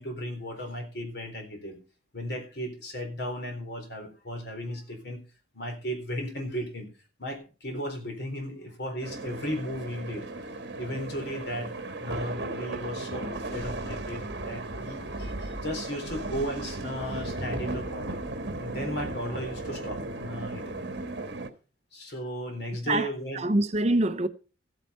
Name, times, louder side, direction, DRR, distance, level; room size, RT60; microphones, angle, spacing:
voice 1, 0.0-1.8 2.1-5.2 5.5-6.9 7.2-10.3 10.8-11.7 12.0-18.2 18.6-20.9 21.9-23.4, equal, 60° left, 3.8 m, -35 dB
sound 1, 9.0-21.5, right 2 dB, 60° right, 1.6 m, -36 dB
voice 2, 22.8-24.3, right 2 dB, 35° right, 0.7 m, -25 dB
14.5 x 9.0 x 4.4 m
head